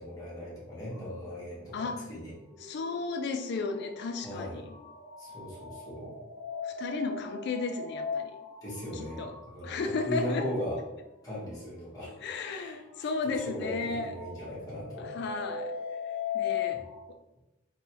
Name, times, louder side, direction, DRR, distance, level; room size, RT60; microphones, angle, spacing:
voice 1, 0.0-2.4 4.2-4.6 5.2-6.1 8.6-10.8 11.2-12.1 12.5-12.8 13.2-15.1, equal, 20° left, -8 dB, 1.2 m, -38 dB
sound 1, 0.9-10.2 10.9-11.1 12.6-17.0, left 6 dB, 10° right, 0.5 m, -40 dB
voice 2, 1.7-2.1 2.6-4.7 6.6-8.3 8.9-9.3 9.6-10.5 12.1-14.1 15.0-15.7 16.3-17.2, left 4 dB, 55° left, 6 dB, 0.3 m, -34 dB
3.2 x 2.2 x 2.9 m, 0.96 s
head